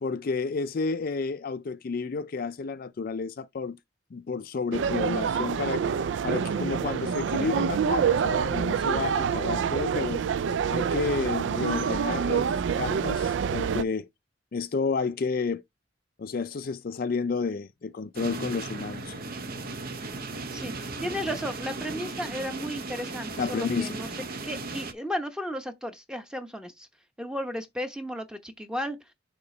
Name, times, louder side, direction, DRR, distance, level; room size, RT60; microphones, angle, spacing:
voice 1, 0.0-3.8 4.1-5.9 6.2-10.2 10.7-14.1 14.5-15.6 16.2-19.1 23.4-24.0, left 4 dB, 50° left, 0.4 m, -31 dB
sound 1, 4.7-13.8, right 7 dB, 65° right, 0.3 m, -27 dB
sound 2, 18.1-24.9, right 3 dB, 50° right, 0.8 m, -36 dB
voice 2, 21.0-24.1 24.4-26.9 27.2-29.0, equal, 5° right, 0.9 m, -34 dB
6.7 x 2.9 x 5.2 m
head